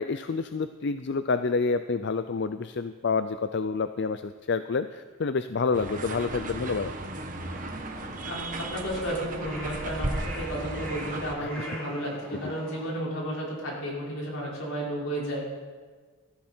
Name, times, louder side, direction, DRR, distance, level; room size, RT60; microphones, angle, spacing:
voice 1, 0.0-6.9 7.2-7.3 11.4-11.6, left 4 dB, 55° left, 11 dB, 0.5 m, -28 dB
sound 1, 5.7-11.4, right 2 dB, 40° right, 1.3 m, -35 dB
Crow, 7.4-12.9, right 1 dB, 5° left, 6.0 m, -43 dB
voice 2, 8.2-15.5, equal, 80° left, -4 dB, 5.1 m, -33 dB
19.0 x 14.0 x 4.5 m, 1.5 s
head